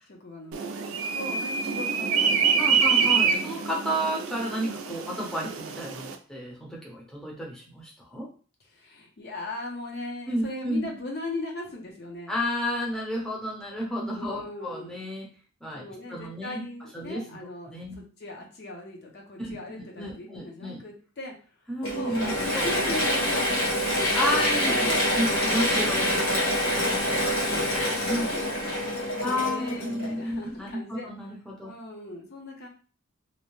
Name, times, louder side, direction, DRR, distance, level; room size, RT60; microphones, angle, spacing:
voice 1, 0.1-2.8 3.3-3.6 8.7-12.4 14.1-15.0 15.7-21.3 21.9-24.0 24.3-26.1 26.7-28.8 29.3-31.1 31.6-32.7, left 2 dB, 50° left, 0 dB, 0.6 m, -39 dB
sound 1, 0.5-6.2, right 6 dB, 85° right, 0.4 m, -26 dB
voice 2, 2.6-8.3 10.3-10.9 12.3-15.3 15.6-15.8 16.1-16.6 16.9-17.4 17.7-18.0 19.4-19.6 20.0-20.8 21.7-22.7 24.1-24.7 25.2-27.3 27.5-27.7 28.0-28.3 29.2-31.7, equal, 5° left, -4 dB, 0.6 m, -32 dB
Mechanisms / Drill, 21.8-30.4, equal, 85° left, 1.0 m, -26 dB
2.6 x 2.1 x 3.0 m, 0.38 s
head